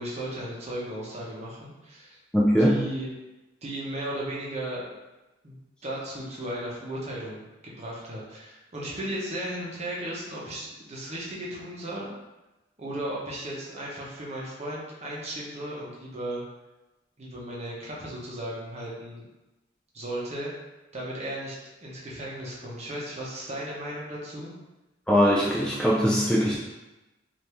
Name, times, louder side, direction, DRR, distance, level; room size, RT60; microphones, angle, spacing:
voice 1, 0.0-2.2 2.6-3.1 3.6-4.9 5.4-7.5 7.8-12.1 12.8-16.4 17.2-19.3 19.9-20.5 20.9-21.6 21.8-24.5, right 1 dB, 35° right, -5 dB, 0.8 m, -35 dB
voice 2, 2.3-2.8 25.1-26.6, equal, 5° left, -6 dB, 0.3 m, -21 dB
3.4 x 2.6 x 2.9 m, 1.1 s
head